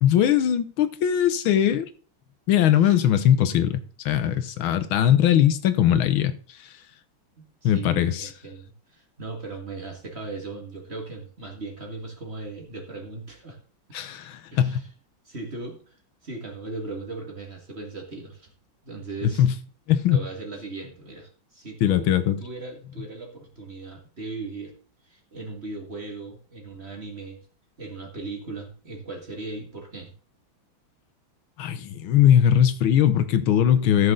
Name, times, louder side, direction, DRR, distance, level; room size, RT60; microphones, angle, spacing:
voice 1, 0.0-1.9 2.5-6.3 6.6-6.7 7.6-8.3 13.9-14.8 19.4-19.5 19.9-20.2 21.8-22.4 31.6-34.1, left 10 dB, 80° left, 1.6 m, -20 dB
voice 2, 7.4-13.6 14.5-14.9 15.3-16.0 16.2-18.5 18.8-19.5 20.1-22.1 22.4-24.7 25.1-27.4 27.8-30.1, right 3 dB, 30° right, 2.1 m, -38 dB
14.0 x 6.4 x 3.8 m
omnidirectional pair, 2.2 m